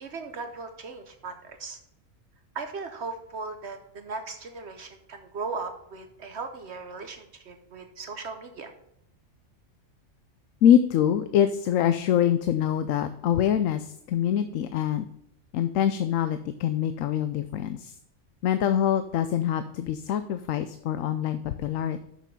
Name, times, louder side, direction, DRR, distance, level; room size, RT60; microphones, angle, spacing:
voice 1, 0.0-1.8 2.5-8.7, right 4 dB, 60° right, 7 dB, 1.0 m, -37 dB
voice 2, 10.6-15.1 15.5-17.9 18.4-22.1, left 10 dB, 80° left, 10 dB, 1.0 m, -24 dB
6.8 x 6.2 x 5.1 m, 0.77 s
omnidirectional pair, 1.3 m